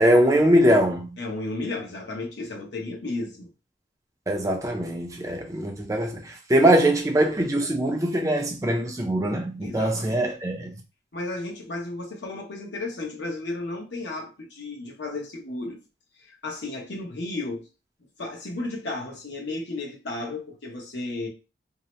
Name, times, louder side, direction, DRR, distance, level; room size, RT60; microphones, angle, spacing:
voice 1, 0.0-1.1 4.3-6.2 6.5-10.7, right 1 dB, 20° right, 0.5 m, -22 dB
voice 2, 1.2-3.5 9.6-10.3 11.1-15.8 16.2-17.6 18.2-21.3, left 2 dB, 75° left, 0.9 m, -33 dB
2.7 x 2.1 x 3.0 m
head